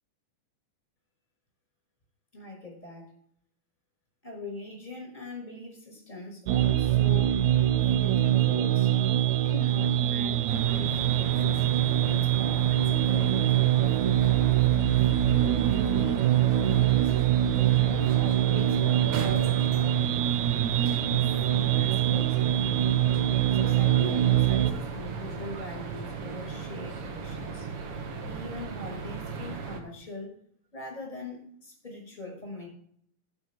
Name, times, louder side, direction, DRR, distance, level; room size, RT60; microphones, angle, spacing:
voice 1, 2.3-3.1 4.2-7.3 7.7-8.9 9.4-11.6 12.0-14.5 15.2-17.2 17.5-20.1 20.4-22.8 23.5-27.7 28.3-30.3 30.7-32.7, left 2 dB, 15° left, 1 dB, 5.4 m, -42 dB
sound 1, 6.5-24.7, right 12 dB, 75° right, 1.9 m, -24 dB
sound 2, 10.5-29.8, right 4 dB, 55° right, 2.1 m, -37 dB
12.5 x 9.6 x 3.5 m, 0.63 s
omnidirectional pair, 3.5 m